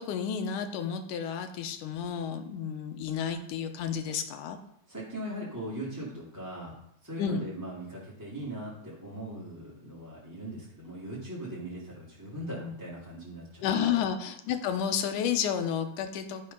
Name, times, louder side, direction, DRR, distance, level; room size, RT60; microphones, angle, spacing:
voice 1, 0.0-4.6 7.2-7.4 13.6-16.5, left 8 dB, 75° left, 7 dB, 2.2 m, -31 dB
voice 2, 4.9-6.7 7.0-13.6 13.9-14.1, right 1 dB, 5° right, -7 dB, 1.7 m, -39 dB
11.0 x 5.4 x 5.3 m, 0.75 s
omnidirectional pair, 3.8 m